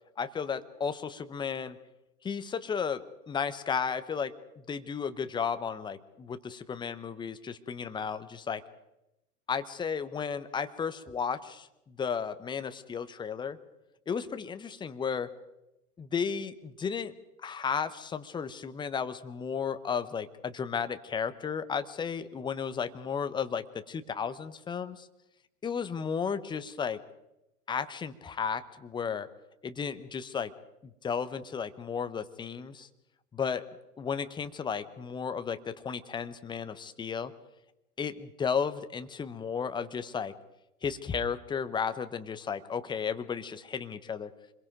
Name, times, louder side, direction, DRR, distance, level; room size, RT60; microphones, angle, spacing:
voice 1, 0.2-1.8 2.2-4.3 4.7-8.6 9.5-13.6 14.1-15.3 16.0-17.1 17.4-25.1 25.6-27.0 27.7-29.3 29.6-30.5 30.8-32.9 33.3-33.6 34.0-37.3 38.0-40.3 40.8-44.3, left 6 dB, 10° left, 11 dB, 0.9 m, -34 dB
26.5 x 22.0 x 5.2 m, 0.92 s
figure-of-eight pair, 100°, 45 cm